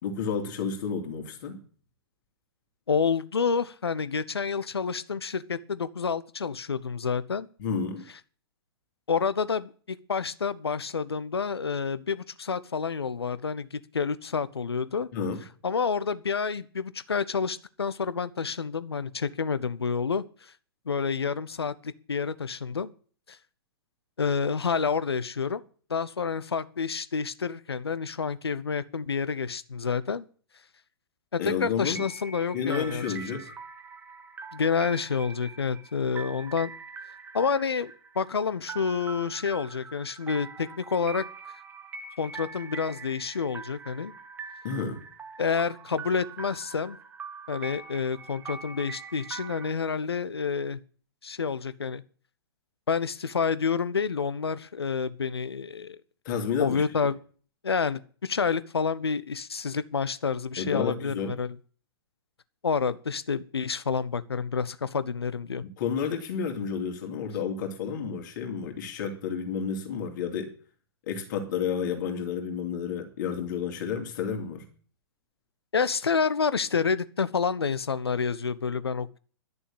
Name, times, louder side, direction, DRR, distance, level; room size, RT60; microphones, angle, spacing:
voice 1, 0.0-1.6 7.6-8.0 15.1-15.5 31.4-32.0 32.5-33.6 44.6-45.0 56.2-56.8 60.6-61.3 65.6-70.5 71.1-74.7, left 6 dB, 50° left, 4 dB, 3.0 m, -31 dB
voice 2, 2.9-7.5 9.1-15.1 15.6-20.5 20.9-22.9 23.3-23.4 24.2-25.6 25.9-30.2 31.3-33.0 33.3-33.4 34.5-36.7 37.3-41.3 42.2-44.1 45.4-47.0 47.5-50.8 51.2-52.0 52.9-56.0 56.6-57.2 57.6-61.6 62.6-65.6 75.7-79.2, left 5 dB, 75° left, 16 dB, 0.9 m, -29 dB
sound 1, 31.9-49.7, right 5 dB, 15° right, 1.2 m, -43 dB
11.5 x 6.9 x 8.8 m, 0.42 s
figure-of-eight pair, 115°, 13 cm